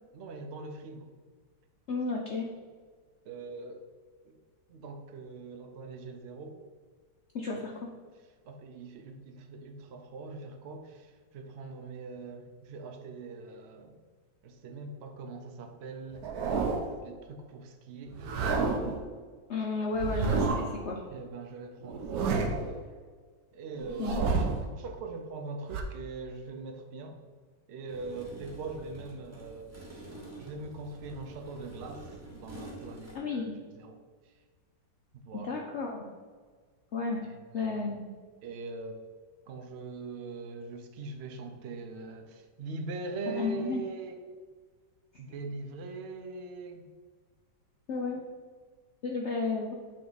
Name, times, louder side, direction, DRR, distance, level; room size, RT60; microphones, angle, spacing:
voice 1, 0.1-1.1 3.2-3.9 4.2-4.4 4.7-6.6 7.5-7.6 8.5-14.0 14.4-16.3 17.0-19.0 21.0-22.7 23.5-27.2 27.7-33.5 33.7-34.0 35.1-35.6 37.2-37.7 38.4-39.0 39.5-44.2 45.2-46.9, right 3 dB, 85° right, 5 dB, 0.5 m, -42 dB
voice 2, 1.9-2.5 7.3-7.9 19.5-21.0 24.0-24.2 33.1-33.5 35.4-36.0 36.9-37.2 37.5-38.2 43.3-43.8 47.9-48.3 49.0-49.7, left 3 dB, 85° left, -1 dB, 0.6 m, -32 dB
sound 1, 16.1-17.0 18.1-19.0 19.9-20.8 21.8-22.8 23.8-24.7 25.7-25.8, right 4 dB, 65° right, 1.0 m, -30 dB
sound 2, 27.9-33.2, right 1 dB, 10° right, 0.7 m, -47 dB
8.6 x 2.9 x 3.9 m, 1.5 s
omnidirectional pair, 2.0 m